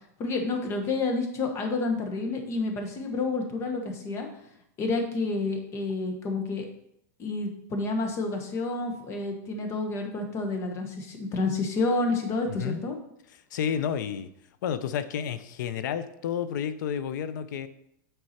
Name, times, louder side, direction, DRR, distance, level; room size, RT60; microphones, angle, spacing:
voice 1, 0.2-4.3 4.8-6.7 7.2-13.0, left 3 dB, 25° left, 4 dB, 1.2 m, -29 dB
voice 2, 13.5-14.3 14.6-17.7, left 8 dB, 75° left, 13 dB, 0.6 m, -30 dB
7.9 x 4.7 x 4.3 m, 0.74 s
supercardioid pair, 155°, 10 cm